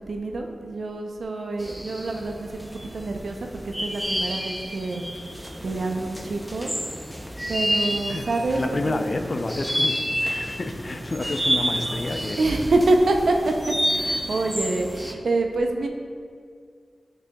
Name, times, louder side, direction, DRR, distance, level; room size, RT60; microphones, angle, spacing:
voice 1, 0.1-5.0 5.6-6.7 7.5-9.0 12.4-13.5 13.9-15.9, right 2 dB, 80° right, 3 dB, 0.6 m, -26 dB
sound 1, 1.6-15.1, equal, ahead, 0.5 m, -30 dB
voice 2, 8.1-12.4, left 2 dB, 50° left, 6 dB, 0.5 m, -29 dB
9.0 x 6.1 x 2.3 m, 2.1 s
wide cardioid pair, 65°, 0 cm